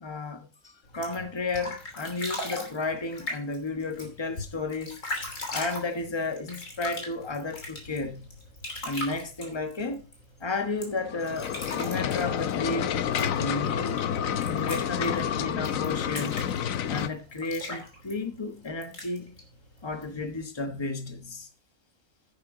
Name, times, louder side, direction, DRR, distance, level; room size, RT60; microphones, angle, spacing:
voice 1, 0.0-5.0 5.5-8.3 8.8-10.1 10.4-14.0 14.4-16.4 16.9-19.4 19.8-21.5, left 3 dB, 20° left, 1.2 m, -33 dB
sound 1, 0.9-20.4, left 2 dB, 70° left, 3.5 m, -40 dB
sound 2, 11.0-17.1, left 9 dB, 90° left, 1.1 m, -29 dB
10.5 x 9.6 x 3.8 m
omnidirectional pair, 1.4 m